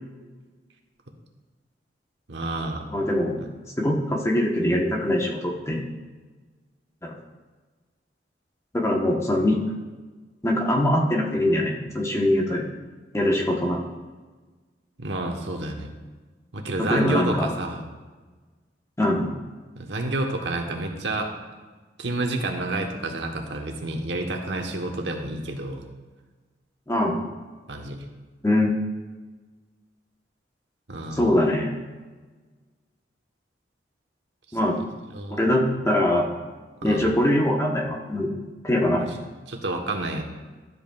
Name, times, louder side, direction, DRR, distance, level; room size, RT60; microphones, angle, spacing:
voice 1, 2.3-2.8 15.0-15.9 16.5-17.8 19.7-21.3 22.0-25.8 27.7-28.0 30.9-31.3 35.1-35.6 36.8-37.1 39.5-40.2, right 2 dB, 80° right, 3 dB, 1.1 m, -29 dB
voice 2, 2.9-3.4 3.8-5.8 7.0-7.1 8.7-9.6 10.4-12.6 13.1-13.8 16.9-17.5 19.0-19.3 26.9-27.2 28.4-28.7 31.2-31.8 34.5-34.7 35.3-36.3 36.8-38.3 38.6-39.1, left 1 dB, 15° left, -1 dB, 1.0 m, -22 dB
12.5 x 8.0 x 2.3 m, 1.3 s
head